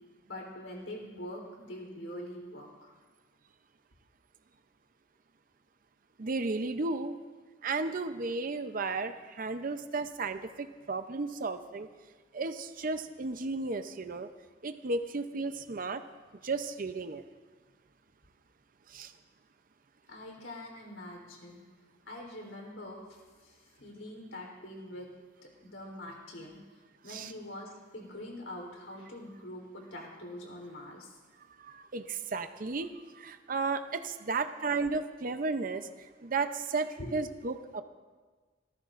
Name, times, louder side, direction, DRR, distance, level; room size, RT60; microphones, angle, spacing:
voice 1, 0.2-2.9 20.1-21.6 22.1-25.1 25.6-26.6 27.0-31.2 37.0-37.1, left 1 dB, 85° left, 0 dB, 3.6 m, -44 dB
voice 2, 6.2-7.1 7.6-11.9 12.3-14.3 14.6-16.0 16.4-17.2 18.9-19.1 27.1-27.3 31.6-37.8, right 3 dB, 45° right, 9 dB, 0.6 m, -34 dB
27.0 x 14.0 x 2.5 m, 1.4 s
head